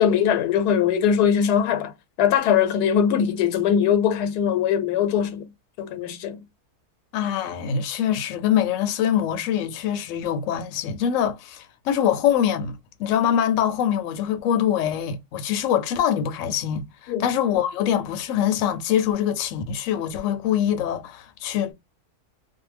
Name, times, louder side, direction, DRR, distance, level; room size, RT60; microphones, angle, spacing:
voice 1, 0.0-1.9 2.2-5.5 5.8-6.4 17.1-17.3, left 8 dB, 85° left, 1.2 m, -21 dB
voice 2, 7.1-21.7, left 9 dB, 65° left, 0.9 m, -24 dB
2.6 x 2.1 x 3.2 m
omnidirectional pair, 1.6 m